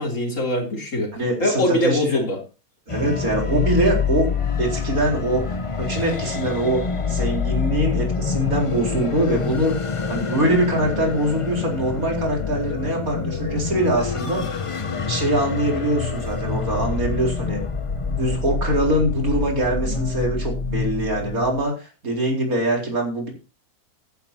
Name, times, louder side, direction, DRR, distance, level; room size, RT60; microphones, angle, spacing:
voice 1, 0.0-1.1 1.4-2.4, left 1 dB, 55° left, 1 dB, 3.7 m, -22 dB
voice 2, 1.1-2.2 2.9-4.3 4.6-6.8 7.1-9.7 10.1-14.4 15.1-17.6 18.0-23.3, right 1 dB, 65° right, 0 dB, 4.6 m, -23 dB
sound 1, 2.9-21.6, left 5 dB, 30° left, 0.6 m, -26 dB
14.5 x 12.0 x 2.8 m, 0.32 s
omnidirectional pair, 1.6 m